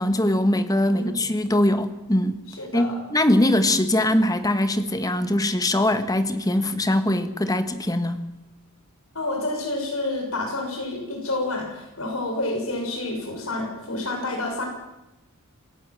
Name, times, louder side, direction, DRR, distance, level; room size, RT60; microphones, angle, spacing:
voice 1, 0.0-2.4 2.7-8.2, left 1 dB, 15° left, 10 dB, 1.3 m, -22 dB
voice 2, 0.8-1.1 2.6-3.0 9.1-14.7, left 2 dB, 75° left, 2 dB, 6.4 m, -29 dB
26.5 x 16.0 x 7.5 m, 0.96 s
head